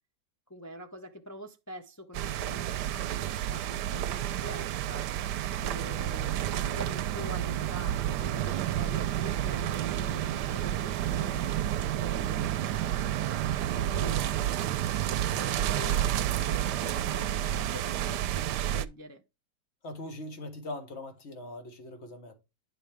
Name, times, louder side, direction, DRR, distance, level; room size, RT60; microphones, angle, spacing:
voice 1, 0.5-2.7 3.1-5.2 5.6-11.5 12.0-14.2 14.9-19.2, equal, 20° left, 0.4 m, -45 dB
sound 1, 2.1-18.9, right 11 dB, 85° right, 1.2 m, -30 dB
voice 2, 19.8-22.3, left 1 dB, 40° left, 1.9 m, -41 dB
10.0 x 4.4 x 3.5 m
omnidirectional pair, 1.8 m